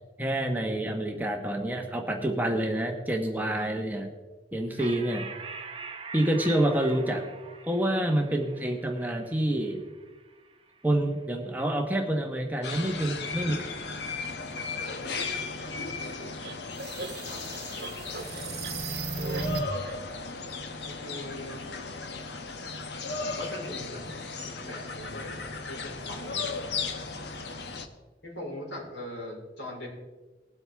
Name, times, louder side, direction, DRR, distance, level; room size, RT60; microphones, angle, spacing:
voice 1, 0.2-4.1 4.5-5.2 6.1-7.3 7.7-9.8 10.8-13.6, right 1 dB, 10° right, 2 dB, 1.1 m, -27 dB
sound 1, 4.8-11.7, right 4 dB, 30° right, 0.9 m, -45 dB
sound 2, 12.6-27.9, left 4 dB, 75° left, 1.0 m, -36 dB
sound 3, 16.4-19.9, right 3 dB, 60° right, 1.3 m, -35 dB
voice 2, 20.8-21.6 23.2-24.0 24.5-26.6 28.2-29.9, left 1 dB, 90° left, -3 dB, 4.4 m, -41 dB
20.0 x 8.0 x 3.5 m, 1.3 s
head